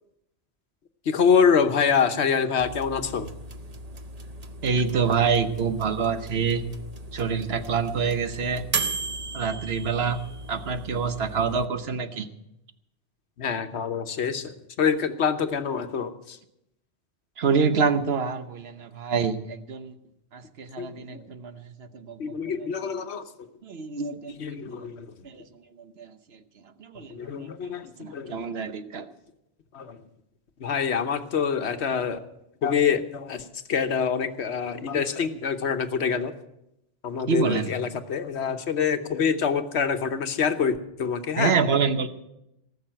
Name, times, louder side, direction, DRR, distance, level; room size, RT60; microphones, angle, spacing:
voice 1, 1.1-3.3 13.4-16.4 20.8-21.2 22.2-23.3 24.4-25.1 27.1-28.5 29.7-30.0 30.6-32.2 32.6-36.3 37.0-41.5, left 6 dB, 90° left, 9 dB, 1.2 m, -26 dB
sound 1, 2.6-11.7, right 3 dB, 40° right, 0.9 m, -36 dB
voice 2, 4.6-6.6 7.1-8.6 9.3-10.2 10.5-12.3 17.4-19.9 20.3-22.2 22.8-23.0 23.6-24.4 24.7-24.9 25.2-25.4 26.0-26.1 26.8-27.7 28.0-29.1 37.3-37.7 41.4-42.1, right 5 dB, 70° right, 10 dB, 1.2 m, -26 dB
18.5 x 6.6 x 8.9 m, 0.86 s
omnidirectional pair, 1.1 m